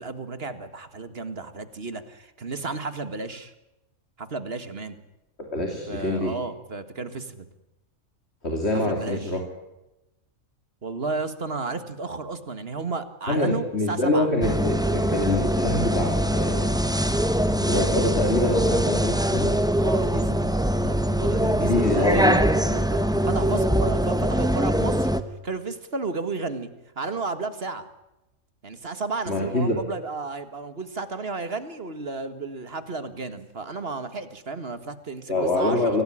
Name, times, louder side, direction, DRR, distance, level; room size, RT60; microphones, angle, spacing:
voice 1, 0.0-3.5 4.2-5.0 5.9-7.5 8.8-9.3 10.8-14.3 19.8-20.4 20.8-25.1 25.4-26.7 27.0-27.8 28.6-36.0, right 3 dB, 45° right, 11 dB, 1.9 m, -33 dB
voice 2, 5.4-6.3 8.4-9.4 13.3-16.7 17.5-19.5 21.7-22.3 29.3-29.8 35.3-36.0, left 2 dB, 50° left, 2 dB, 3.3 m, -25 dB
sound 1, 14.4-25.2, equal, 5° right, 1.0 m, -23 dB
25.0 x 17.5 x 10.0 m, 0.96 s
omnidirectional pair, 1.4 m